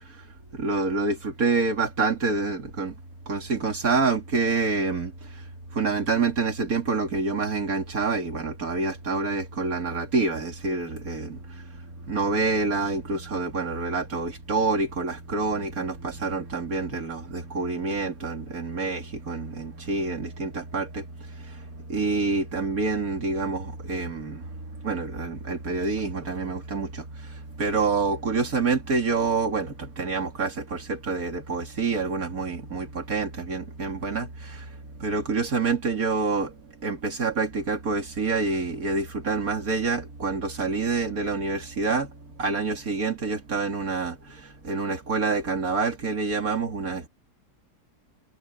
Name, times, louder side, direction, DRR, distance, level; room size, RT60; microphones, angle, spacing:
voice 1, 0.5-2.9 3.3-5.1 5.7-11.4 12.0-34.7 35.0-47.1, right 4 dB, 55° right, 3.1 m, -27 dB
omnidirectional pair, 1.8 m